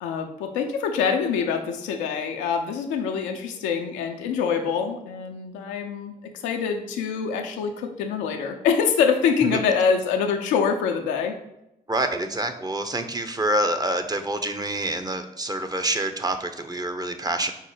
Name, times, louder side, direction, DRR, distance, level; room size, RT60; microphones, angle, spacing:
voice 1, 0.0-6.1 6.4-11.3, left 6 dB, 90° left, 4 dB, 0.5 m, -25 dB
voice 2, 11.9-17.5, right 1 dB, 20° right, 7 dB, 0.6 m, -27 dB
5.3 x 2.0 x 4.8 m, 0.87 s
hypercardioid pair, 40°, 18 cm